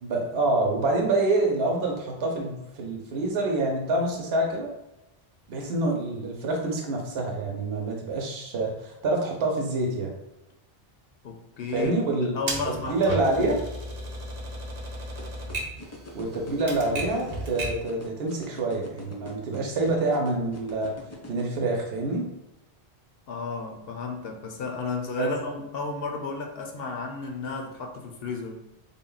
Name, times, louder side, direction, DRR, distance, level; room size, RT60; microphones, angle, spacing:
voice 1, 0.0-4.7 5.5-10.1 11.7-12.3 12.9-13.6 16.1-20.9 21.3-22.3 25.2-25.3, right 2 dB, 75° right, 0 dB, 0.9 m, -26 dB
voice 2, 11.2-13.6 23.3-28.6, left 4 dB, 70° left, 2 dB, 0.8 m, -33 dB
Typewriter, 12.5-17.9, right 1 dB, 45° right, 0.7 m, -35 dB
sound 1, 15.2-21.4, left 2 dB, 25° left, 0.3 m, -42 dB
3.6 x 2.2 x 3.8 m, 0.94 s
omnidirectional pair, 1.1 m